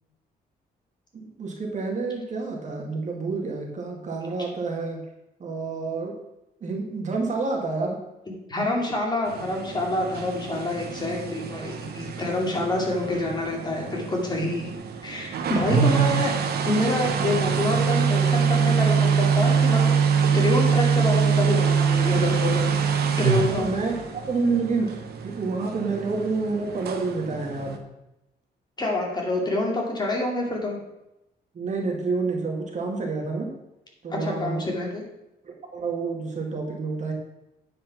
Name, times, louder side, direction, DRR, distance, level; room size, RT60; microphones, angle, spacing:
voice 1, 1.1-5.0 5.4-6.1 6.6-8.0 12.5-12.6 15.6-16.0 23.3-27.8 31.5-33.5 34.0-34.6 35.4-37.1, right 3 dB, 45° right, 0 dB, 2.3 m, -29 dB
voice 2, 8.5-14.7 15.0-16.3 16.6-19.9 20.3-22.7 23.2-23.7 28.8-30.8 34.1-35.0, left 2 dB, 25° left, -1 dB, 2.5 m, -27 dB
sound 1, 9.3-27.8, right 6 dB, 75° right, 1.2 m, -24 dB
9.4 x 5.3 x 5.9 m, 0.90 s
cardioid pair, 115°, 16 cm